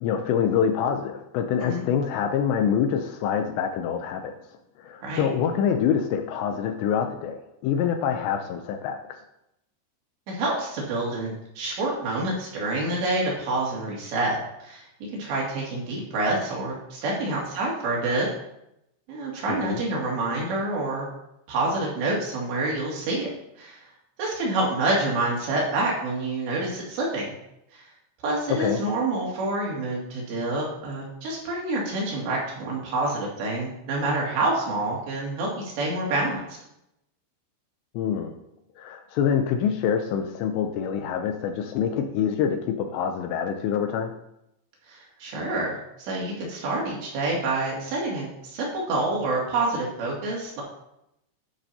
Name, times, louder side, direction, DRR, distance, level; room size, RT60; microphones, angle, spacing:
voice 1, 0.0-4.3 4.8-9.2 19.5-19.8 28.5-28.9 37.9-38.4 38.8-44.1, left 8 dB, 80° left, 5 dB, 2.7 m, -26 dB
voice 2, 10.3-14.9 15.1-18.3 19.1-21.1 21.5-23.3 23.6-23.8 24.2-27.3 27.7-27.8 28.2-36.4 44.9-50.6, right 2 dB, 70° right, -4 dB, 4.6 m, -27 dB
12.0 x 10.5 x 2.8 m, 0.84 s
omnidirectional pair, 5.4 m